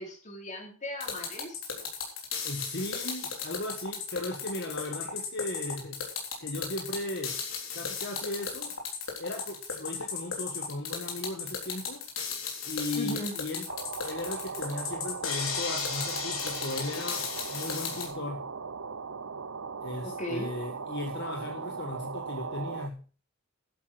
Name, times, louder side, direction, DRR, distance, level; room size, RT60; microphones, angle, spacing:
voice 1, 0.0-1.9 12.9-13.3 20.0-20.5, left 1 dB, 35° left, 2 dB, 3.9 m, -38 dB
sound 1, 1.0-18.1, left 6 dB, 70° left, 3.9 m, -35 dB
voice 2, 2.4-6.0 6.4-7.4 7.7-8.8 9.2-12.0 12.6-13.7 14.0-18.5 19.8-23.0, left 2 dB, 55° left, 2 dB, 1.7 m, -37 dB
sound 2, 13.7-22.9, right 5 dB, 65° right, 0.8 m, -39 dB
11.0 x 8.5 x 6.5 m, 0.38 s
head